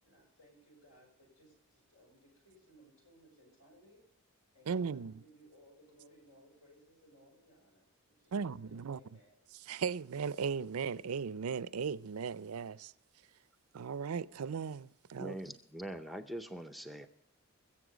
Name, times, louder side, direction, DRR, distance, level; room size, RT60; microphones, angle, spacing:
voice 1, 0.0-4.0 4.5-9.4, equal, 80° left, 5.7 m, -63 dB
voice 2, 4.7-5.2 8.3-9.0 9.6-12.9 13.7-15.4, right 6 dB, 85° right, 0.5 m, -37 dB
voice 3, 15.2-17.1, right 1 dB, ahead, 0.5 m, -43 dB
22.0 x 7.5 x 5.0 m
head